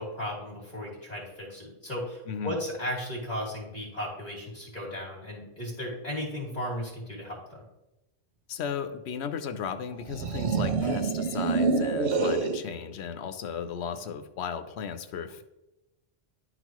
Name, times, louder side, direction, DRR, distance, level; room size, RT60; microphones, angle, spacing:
voice 1, 0.0-7.6, left 1 dB, 40° left, -9 dB, 2.2 m, -35 dB
voice 2, 2.3-2.6 8.5-15.4, left 7 dB, 80° left, 9 dB, 0.9 m, -35 dB
sound 1, 10.0-12.7, right 4 dB, 85° right, 1.0 m, -26 dB
11.0 x 4.0 x 3.0 m, 0.99 s
omnidirectional pair, 1.1 m